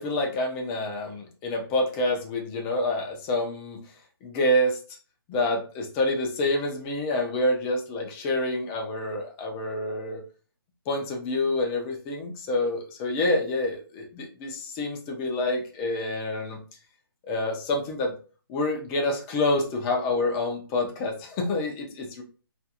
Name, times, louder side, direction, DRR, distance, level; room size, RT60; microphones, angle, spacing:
voice 1, 0.0-3.8 4.2-4.8 5.3-10.2 10.9-16.6 17.3-18.1 18.5-22.2, left 1 dB, 15° left, 1 dB, 0.3 m, -27 dB
2.4 x 2.3 x 2.7 m, 0.37 s
hypercardioid pair, 155°, 12 cm